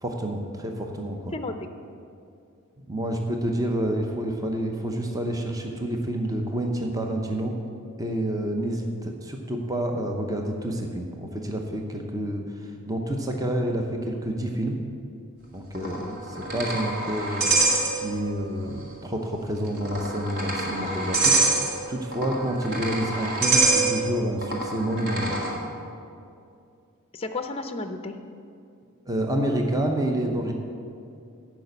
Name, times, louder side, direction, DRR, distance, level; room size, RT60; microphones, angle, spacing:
voice 1, 0.0-1.3 2.8-7.6 8.0-14.8 15.5-16.0 16.4-25.4 29.1-30.5, right 1 dB, 15° right, 2 dB, 0.7 m, -29 dB
sound 1, 15.7-18.4 18.7-18.8 19.7-25.5, right 2 dB, 45° right, 1.7 m, -25 dB
voice 2, 15.8-16.2 27.1-28.1, left 3 dB, 25° left, 7 dB, 0.5 m, -33 dB
11.0 x 5.9 x 8.1 m, 2.5 s
head